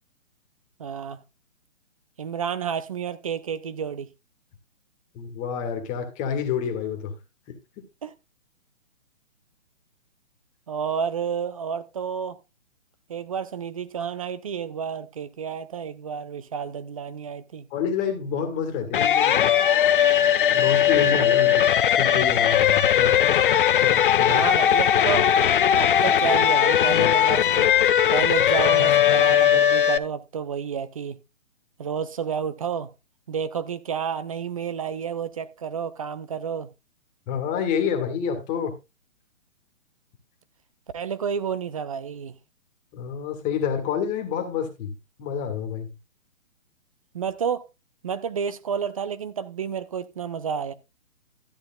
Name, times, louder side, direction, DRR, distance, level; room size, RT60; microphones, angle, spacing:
voice 1, 0.8-1.2 2.2-4.1 8.0-8.1 10.7-12.4 13.1-17.7 24.3-25.3 25.8-27.7 28.1-31.2 31.8-32.9 33.3-36.7 40.9-42.3 47.1-47.7 48.0-50.7, right 7 dB, 25° right, 0.5 m, -30 dB
voice 2, 5.1-7.1 17.7-19.4 20.5-23.2 23.8-24.4 37.3-38.7 42.9-44.9 45.2-45.9, left 7 dB, 20° left, 1.8 m, -28 dB
sound 1, 18.9-30.0, left 10 dB, 40° left, 0.7 m, -19 dB
13.0 x 10.5 x 2.4 m
hypercardioid pair, 145°, 39 cm